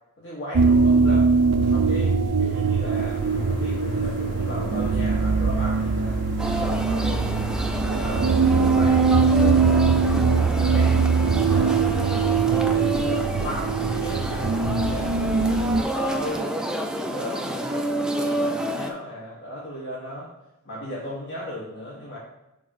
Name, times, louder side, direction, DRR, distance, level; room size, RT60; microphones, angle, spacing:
voice 1, 0.2-1.3 1.7-7.3 7.8-9.9 10.7-10.9 11.2-11.8 12.5-16.6 17.1-20.3 20.6-22.2, equal, 55° left, -7 dB, 1.4 m, -36 dB
sound 1, 0.5-15.8, right 5 dB, 90° right, 0.5 m, -21 dB
sound 2, 2.9-16.4, equal, 35° left, 2.6 m, -41 dB
sound 3, 6.4-18.9, right 1 dB, 5° right, 0.4 m, -29 dB
6.2 x 3.6 x 5.5 m, 0.91 s
head